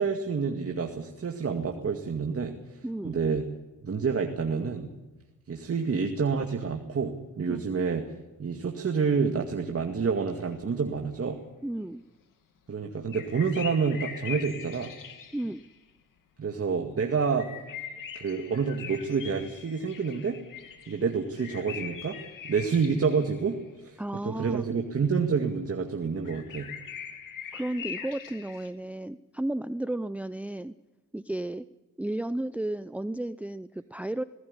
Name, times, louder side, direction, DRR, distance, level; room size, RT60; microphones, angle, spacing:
voice 1, 0.0-3.4 3.8-4.9 5.5-8.0 8.4-11.4 12.7-14.9 16.4-17.5 18.2-20.4 20.9-22.2 22.4-24.0 24.2-26.7, right 5 dB, 45° right, 3 dB, 2.2 m, -28 dB
voice 2, 2.8-3.2 7.5-7.6 11.6-12.0 15.3-15.6 24.0-24.6 27.5-30.7 31.1-31.7 32.0-34.2, right 1 dB, 5° right, 14 dB, 0.6 m, -33 dB
sound 1, 13.1-15.7 17.3-23.6 26.2-28.7, left 7 dB, 75° left, 2.7 m, -42 dB
19.5 x 17.0 x 9.9 m, 1.1 s
cardioid pair, 75°, 33 cm